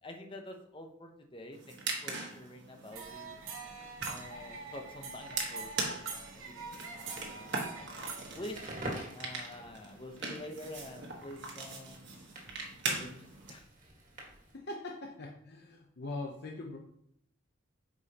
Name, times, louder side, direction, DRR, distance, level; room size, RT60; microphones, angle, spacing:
voice 1, 0.0-3.3 4.1-7.9 8.4-8.6 9.1-12.2 12.9-13.7, left 1 dB, 25° left, 3 dB, 0.8 m, -48 dB
sound 1, 1.5-13.5, right 3 dB, 60° right, 1.4 m, -41 dB
sound 2, 2.9-8.8, right 4 dB, 90° right, 1.1 m, -44 dB
Crackle, 8.4-14.6, right 1 dB, 40° right, 1.7 m, -47 dB
voice 2, 14.5-16.8, left 2 dB, 55° left, 0 dB, 0.7 m, -41 dB
8.0 x 5.2 x 2.9 m, 0.71 s
head